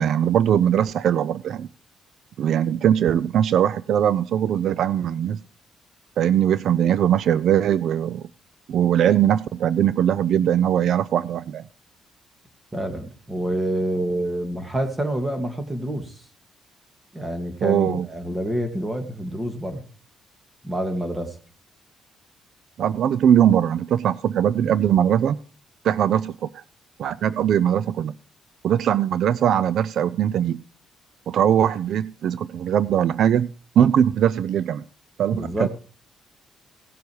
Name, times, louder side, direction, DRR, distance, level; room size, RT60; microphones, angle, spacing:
voice 1, 0.0-1.7 2.4-5.4 6.2-8.3 8.7-11.7 17.6-18.1 22.8-25.4 25.8-26.6 27.0-28.1 28.6-30.6 31.3-33.5 33.8-34.9 35.2-35.7, right 9 dB, 70° right, 18 dB, 0.4 m, -20 dB
voice 2, 12.7-16.2 17.1-19.8 20.6-21.3 35.3-35.7, right 1 dB, 20° right, 6 dB, 2.6 m, -27 dB
17.5 x 7.0 x 4.8 m, 0.40 s
cardioid pair, 90°, 0 cm